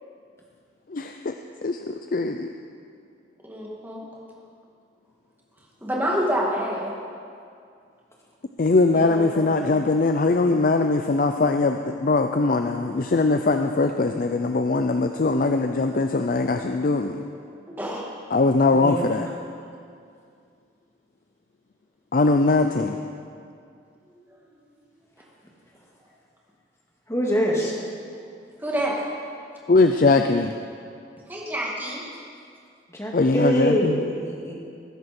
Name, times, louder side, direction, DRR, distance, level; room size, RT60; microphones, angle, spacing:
voice 1, 0.9-1.3 1.6-2.5 8.6-17.2 18.3-19.3 22.1-23.0 29.7-30.5 33.1-34.0, left 3 dB, 45° left, 6 dB, 0.5 m, -21 dB
voice 2, 3.4-4.0 5.8-6.9 9.1-9.4 17.8-18.0 28.6-28.9 31.3-32.0, equal, 10° right, -4 dB, 2.2 m, -27 dB
voice 3, 18.7-19.1 27.1-27.7 32.9-34.5, equal, 15° left, -3 dB, 2.0 m, -24 dB
20.0 x 11.0 x 4.3 m, 2.3 s
head